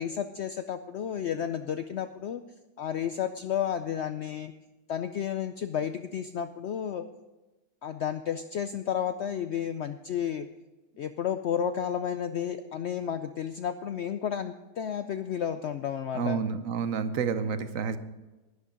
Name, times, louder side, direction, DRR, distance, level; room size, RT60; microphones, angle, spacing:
voice 1, 0.0-2.4 2.8-4.5 4.9-7.0 7.8-10.5 11.0-16.4, left 9 dB, 80° left, 10 dB, 0.6 m, -32 dB
voice 2, 16.1-18.0, right 6 dB, 60° right, 11 dB, 1.1 m, -29 dB
11.5 x 11.0 x 5.1 m, 1.1 s
omnidirectional pair, 1.7 m